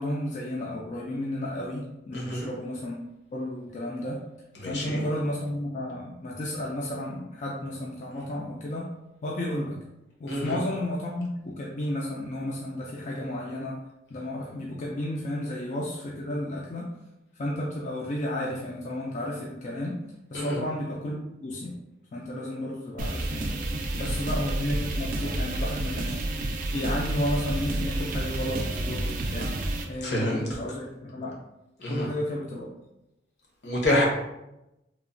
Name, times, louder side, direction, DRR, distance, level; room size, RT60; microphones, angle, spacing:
voice 1, 0.0-3.0 3.3-4.2 4.7-8.9 9.2-9.8 10.2-13.8 14.1-16.9 17.4-20.0 20.3-21.8 22.1-23.6 24.0-26.2 26.7-29.6 29.9-31.4 31.8-32.7, left 1 dB, 45° left, -3 dB, 0.3 m, -32 dB
voice 2, 2.1-2.5 4.6-5.0 10.3-10.6 20.3-20.6 30.0-30.4 31.8-32.1 33.6-34.1, left 1 dB, 75° left, -2 dB, 0.8 m, -27 dB
sound 1, 23.0-29.9, right 1 dB, 50° right, 0.4 m, -30 dB
3.0 x 2.1 x 2.5 m, 0.91 s
head